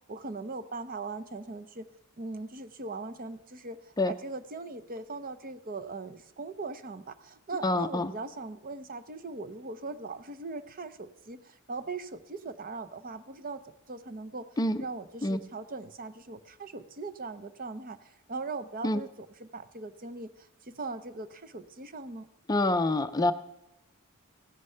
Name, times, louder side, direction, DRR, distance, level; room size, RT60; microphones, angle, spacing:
voice 1, 0.0-1.9 2.2-14.5 14.8-22.3, right 3 dB, 40° right, 12 dB, 0.7 m, -40 dB
voice 2, 7.6-8.1 14.6-14.8 15.2-15.4 18.8-19.0 22.5-23.3, left 2 dB, 20° left, 11 dB, 0.5 m, -26 dB
16.0 x 9.8 x 5.6 m, 0.92 s
head